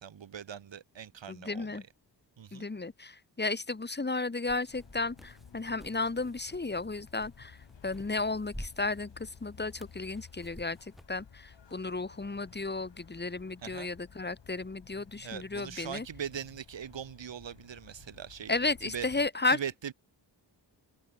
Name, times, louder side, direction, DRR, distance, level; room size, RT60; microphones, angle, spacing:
voice 1, 0.0-1.9 2.4-2.7 13.6-13.9 15.2-19.1 19.5-19.9, right 8 dB, 85° right, 2.1 m, -41 dB
voice 2, 1.3-1.8 2.5-7.6 7.8-16.0 18.5-19.6, left 3 dB, 25° left, 1.7 m, -33 dB
sound 1, 4.4-11.2, equal, ahead, 3.3 m, -51 dB
sound 2, 4.7-19.3, left 7 dB, 75° left, 5.4 m, -55 dB
open air
wide cardioid pair, 170°, 44 cm